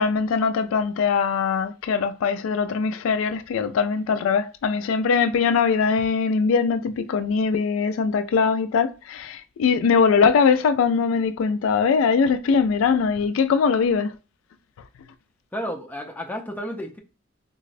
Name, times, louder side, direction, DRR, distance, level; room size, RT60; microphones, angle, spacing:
voice 1, 0.0-14.1, left 5 dB, 90° left, 0.3 m, -21 dB
voice 2, 15.5-17.0, equal, 10° left, 0.4 m, -32 dB
3.9 x 2.0 x 2.5 m
head